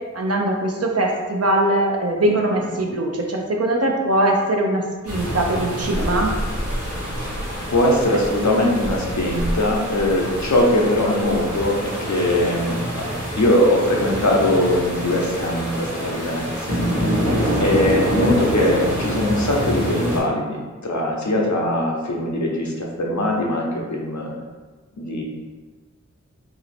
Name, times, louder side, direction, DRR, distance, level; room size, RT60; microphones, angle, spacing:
voice 1, 0.1-6.3 12.4-12.5 17.2-17.4, right 1 dB, 55° right, 0 dB, 0.6 m, -21 dB
sound 1, 5.1-20.2, equal, 90° right, 1.1 m, -26 dB
voice 2, 7.7-13.1 13.4-16.8 17.6-24.3 25.0-25.2, left 1 dB, 70° left, -1 dB, 0.7 m, -21 dB
2.9 x 2.7 x 4.2 m, 1.3 s
wide cardioid pair, 45°, 30 cm